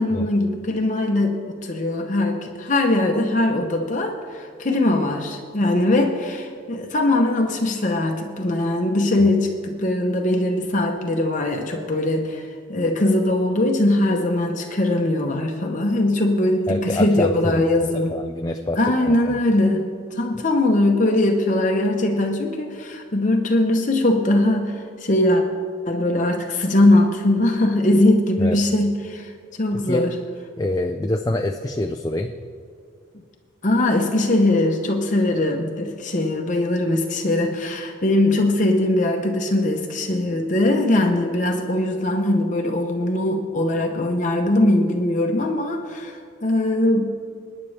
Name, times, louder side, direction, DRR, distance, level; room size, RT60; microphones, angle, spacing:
voice 1, 0.0-18.2 18.8-25.4 25.9-30.2 33.6-47.1, left 1 dB, 35° left, 2 dB, 0.7 m, -21 dB
voice 2, 16.7-18.8 19.1-19.4 28.4-28.6 29.7-30.1 30.6-32.3, left 1 dB, 15° left, 4 dB, 0.4 m, -26 dB
21.5 x 10.0 x 3.2 m, 2.2 s
head